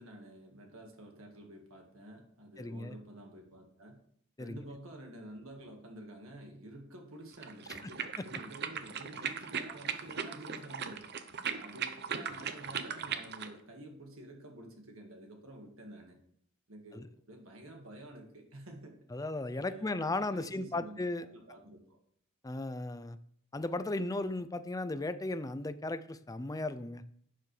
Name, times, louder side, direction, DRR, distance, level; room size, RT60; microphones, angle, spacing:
voice 1, 0.0-4.0 4.4-11.1 11.5-16.2 16.7-19.0 19.5-22.0, right 1 dB, 70° right, 2 dB, 1.8 m, -50 dB
voice 2, 2.6-2.9 4.4-4.6 16.9-17.0 19.1-21.2 22.4-23.2 23.5-27.0, left 2 dB, 15° left, 13 dB, 0.5 m, -36 dB
sound 1, 7.3-13.5, right 7 dB, 50° right, 0.8 m, -38 dB
12.0 x 9.2 x 3.3 m, 0.65 s
head